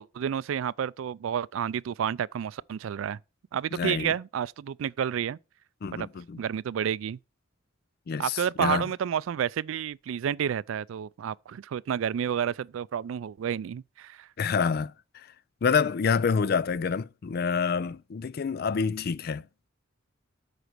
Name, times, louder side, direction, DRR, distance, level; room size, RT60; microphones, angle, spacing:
voice 1, 0.0-3.2 3.5-5.4 5.9-6.1 6.4-7.2 8.2-14.3, right 8 dB, 80° right, 0.3 m, -30 dB
voice 2, 3.7-4.1 5.8-6.4 8.1-8.9 14.4-14.9 15.6-19.4, left 5 dB, 50° left, 0.4 m, -27 dB
8.1 x 4.9 x 5.9 m
head